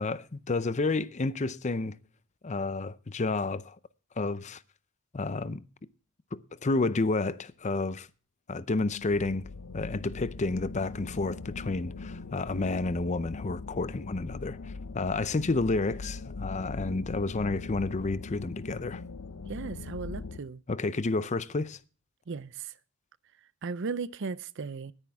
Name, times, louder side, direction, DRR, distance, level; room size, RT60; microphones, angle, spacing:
voice 1, 0.0-1.9 2.4-3.8 4.2-4.6 5.1-5.6 6.3-8.1 8.5-9.4 9.7-19.0 20.7-21.8, left 3 dB, 35° left, 0.6 m, -30 dB
sound 1, 8.9-20.4, left 3 dB, 90° left, 0.7 m, -41 dB
voice 2, 19.4-20.6 22.3-22.7 23.6-24.9, right 4 dB, 60° right, 0.6 m, -36 dB
19.0 x 10.0 x 3.5 m
head